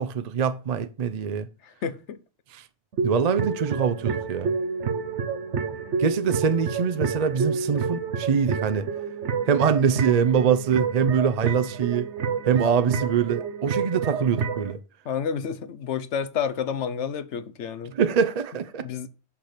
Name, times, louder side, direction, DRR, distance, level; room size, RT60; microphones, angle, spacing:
voice 1, 0.0-1.5 2.5-2.6 3.0-4.6 6.0-8.9 9.5-12.1 12.5-14.8 17.9-18.9, right 7 dB, 45° right, 0.5 m, -24 dB
voice 2, 1.6-2.2 15.0-17.9 18.8-19.1, left 7 dB, 85° left, 1.1 m, -30 dB
sound 1, 2.9-14.7, right 5 dB, 85° right, 1.2 m, -29 dB
5.9 x 5.7 x 6.6 m
omnidirectional pair, 1.2 m